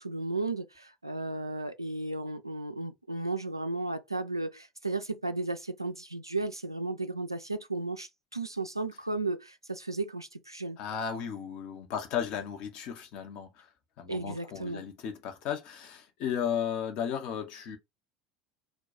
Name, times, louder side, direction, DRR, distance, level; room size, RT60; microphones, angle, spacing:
voice 1, 0.0-10.8 14.1-14.8, right 2 dB, 90° right, 0.3 m, -34 dB
voice 2, 10.8-13.7 14.0-17.8, left 8 dB, 50° left, 0.8 m, -35 dB
2.3 x 2.2 x 4.0 m
figure-of-eight pair, 70°, 2 cm